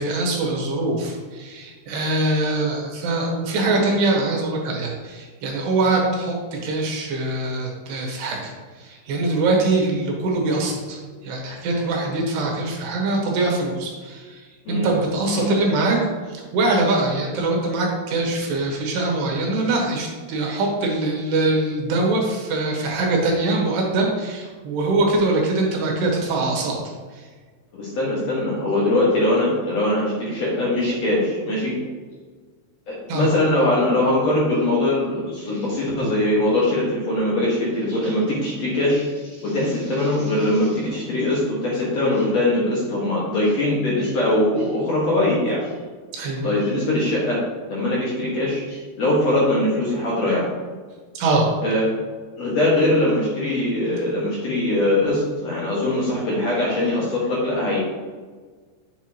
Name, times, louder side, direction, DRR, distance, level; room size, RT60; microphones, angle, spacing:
voice 1, 0.0-16.0 16.3-26.8 27.1-27.2 33.1-33.3 46.1-46.5 51.1-51.5, right 2 dB, 80° right, -1 dB, 3.5 m, -23 dB
voice 2, 27.7-31.8 32.9-45.7 46.4-47.4 47.7-50.5 51.6-51.9 52.4-57.8, left 1 dB, 55° left, -6 dB, 2.2 m, -22 dB
8.5 x 7.0 x 3.0 m, 1.5 s
omnidirectional pair, 4.7 m